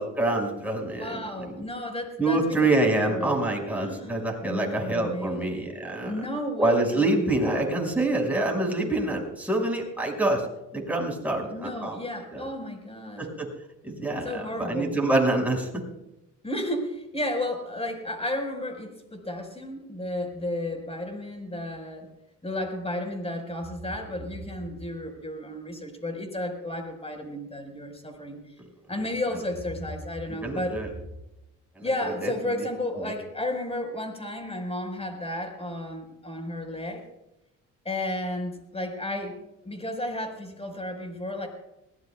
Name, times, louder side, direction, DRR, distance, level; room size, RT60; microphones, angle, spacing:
voice 1, 0.0-1.2 2.2-6.1 6.6-10.5 10.7-12.0 12.3-12.4 13.2-13.5 13.8-15.8 30.4-30.9 31.8-32.3 33.0-33.1, right 2 dB, 5° right, -1 dB, 5.7 m, -26 dB
voice 2, 0.9-3.4 3.7-5.5 6.0-7.3 11.4-13.3 14.2-15.0 16.4-22.1 22.4-28.5 28.9-30.9 31.8-37.0 37.8-39.3 39.6-41.5, left 1 dB, 20° left, 4 dB, 4.9 m, -33 dB
22.5 x 18.0 x 2.4 m, 0.92 s
cardioid pair, 90°, 30 cm